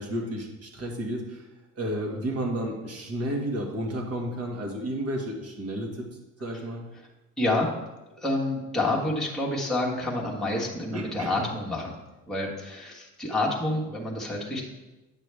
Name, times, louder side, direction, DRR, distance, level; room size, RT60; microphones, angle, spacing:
voice 1, 0.0-1.5 1.8-6.1 6.4-6.8 10.9-11.4, right 1 dB, 45° right, 1 dB, 1.9 m, -32 dB
voice 2, 7.4-7.7 8.2-11.9 12.3-14.6, left 2 dB, ahead, -4 dB, 1.4 m, -28 dB
9.2 x 6.1 x 3.4 m, 1.1 s
cardioid pair, 115°, 32 cm